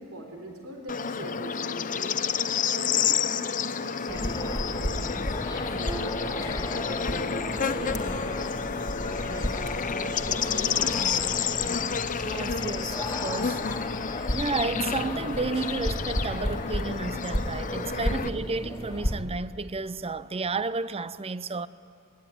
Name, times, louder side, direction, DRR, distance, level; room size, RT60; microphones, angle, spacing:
voice 1, 0.0-2.1 2.6-5.1 5.8-11.1 18.1-18.5, right 1 dB, 80° right, 3.9 m, -41 dB
Bird / Insect, 0.9-18.3, left 7 dB, 40° left, 0.7 m, -30 dB
sound 1, 4.1-19.1, left 1 dB, 15° left, 2.3 m, -33 dB
voice 2, 12.2-21.7, right 3 dB, 25° right, 0.6 m, -32 dB
26.0 x 22.5 x 9.4 m
head